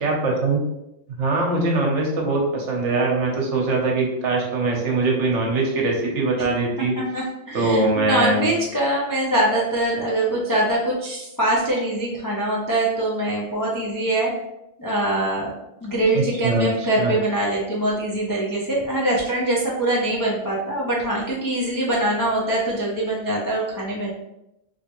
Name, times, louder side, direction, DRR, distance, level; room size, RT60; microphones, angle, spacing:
voice 1, 0.0-0.6 1.2-6.9 7.5-8.5 16.1-17.1, right 3 dB, 70° right, 0 dB, 1.1 m, -22 dB
voice 2, 7.0-14.3 14.8-15.5 15.8-24.1, right 1 dB, 35° left, -5 dB, 0.3 m, -23 dB
3.3 x 2.8 x 2.9 m, 0.88 s
omnidirectional pair, 1.3 m